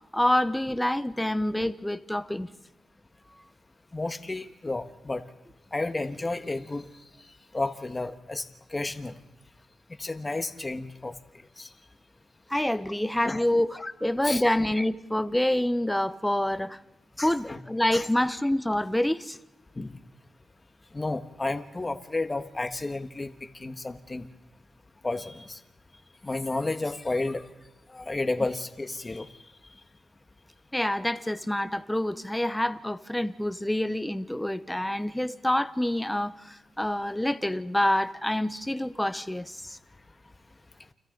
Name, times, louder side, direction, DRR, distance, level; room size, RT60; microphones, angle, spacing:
voice 1, 0.1-2.5 12.5-16.8 17.2-19.4 30.7-39.8, left 1 dB, 5° left, 12 dB, 0.9 m, -27 dB
voice 2, 3.9-5.2 5.7-6.9 7.5-8.4 8.7-9.1 10.0-11.1 11.6-11.7 13.2-13.4 13.8-13.9 14.2-14.4 17.2-17.6 17.9-18.1 19.7-20.0 20.9-23.3 23.6-24.3 25.0-25.6 26.2-27.5 27.9-29.3, left 2 dB, 25° left, 8 dB, 1.6 m, -31 dB
29.5 x 26.0 x 4.0 m, 1.0 s
cardioid pair, 90°, 0 cm